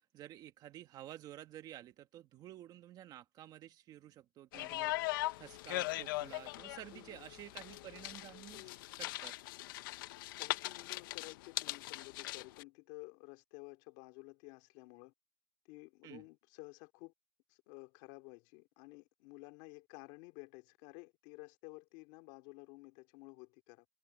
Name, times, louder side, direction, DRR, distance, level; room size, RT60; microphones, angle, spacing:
voice 1, 0.1-5.0 5.4-9.4 16.0-16.2, right 13 dB, 35° right, 1.8 m, -52 dB
sound 1, 4.5-12.6, left 18 dB, 80° left, 0.8 m, -40 dB
voice 2, 6.9-7.2 10.4-15.1 15.7-17.1 17.5-23.9, left 26 dB, 60° left, 2.5 m, -53 dB
supercardioid pair, 150°, 11 cm